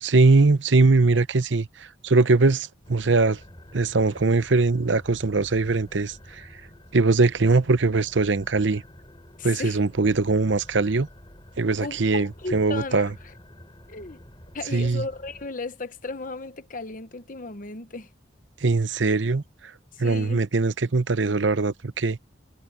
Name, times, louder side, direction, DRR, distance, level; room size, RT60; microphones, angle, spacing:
voice 1, 0.0-3.4 3.7-6.5 6.9-8.8 9.4-11.1 11.6-13.1 14.7-15.0 18.6-19.4 20.0-22.3, right 3 dB, 70° right, 0.8 m, -21 dB
sound 1, 2.8-15.5, equal, 25° left, 6.8 m, -48 dB
voice 2, 9.4-9.8 11.8-13.1 13.9-14.2 14.5-18.1 19.9-20.4, left 3 dB, 45° left, 1.0 m, -35 dB
head